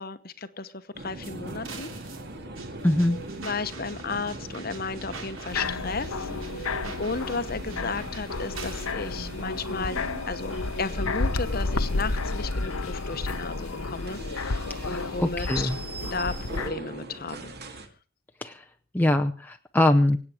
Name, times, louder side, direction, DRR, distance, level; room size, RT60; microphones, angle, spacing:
voice 1, 0.0-1.9 3.4-6.7 7.0-15.7 16.0-17.5, left 4 dB, 45° left, 12 dB, 1.0 m, -34 dB
sound 1, 0.9-17.9, right 2 dB, 50° right, 2.2 m, -41 dB
sound 2, 1.2-8.9, right 4 dB, 70° right, 3.1 m, -43 dB
voice 2, 2.8-3.2 14.7-15.8 18.4-18.6 18.9-20.2, left 1 dB, 10° left, 4 dB, 0.6 m, -23 dB
sound 3, 5.5-16.7, left 3 dB, 80° left, 1.0 m, -31 dB
25.0 x 8.7 x 4.9 m, 0.37 s
head